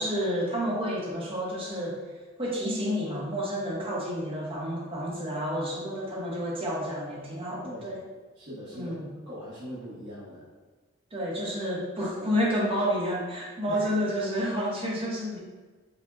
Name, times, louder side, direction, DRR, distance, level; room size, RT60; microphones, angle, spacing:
voice 1, 0.0-2.0 2.4-8.0 8.7-9.1 11.1-15.4, equal, 25° right, -4 dB, 0.7 m, -30 dB
voice 2, 8.4-10.5 13.7-13.9, equal, 55° right, -12 dB, 0.9 m, -41 dB
5.0 x 2.1 x 2.3 m, 1.3 s
head